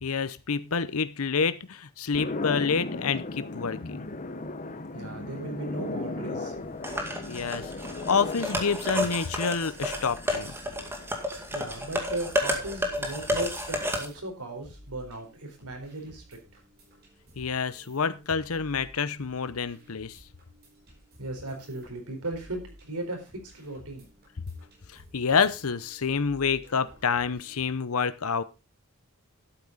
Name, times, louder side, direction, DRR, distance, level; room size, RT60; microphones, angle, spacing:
voice 1, 0.0-4.1 7.2-7.7 8.1-10.6 17.4-20.2 24.9-28.4, left 5 dB, 70° left, 15 dB, 0.8 m, -28 dB
sound 1, 2.1-12.5, left 2 dB, 35° left, 0.9 m, -37 dB
voice 2, 4.9-6.7 11.5-16.4 21.2-24.1, right 2 dB, 90° right, 3 dB, 4.2 m, -37 dB
sound 2, 6.8-14.0, equal, 10° right, 2.0 m, -31 dB
sound 3, 12.2-27.6, equal, 45° right, 5.4 m, -55 dB
12.0 x 8.6 x 4.0 m, 0.29 s
head